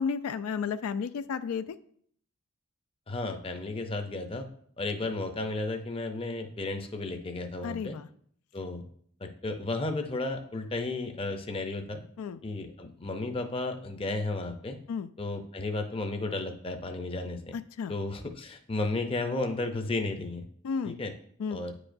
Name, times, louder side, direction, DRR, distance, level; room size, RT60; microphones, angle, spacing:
voice 1, 0.0-1.8 7.6-8.1 12.2-12.4 14.9-15.1 17.5-17.9 20.6-21.0 21.4-21.6, left 6 dB, 85° left, 12 dB, 0.3 m, -32 dB
voice 2, 3.1-4.5 4.8-8.0 8.5-8.8 9.2-12.0 12.4-14.8 15.2-17.6 17.9-20.4 20.8-21.1 21.5-21.7, left 2 dB, 25° left, 5 dB, 0.5 m, -33 dB
9.4 x 4.9 x 2.6 m, 0.62 s
head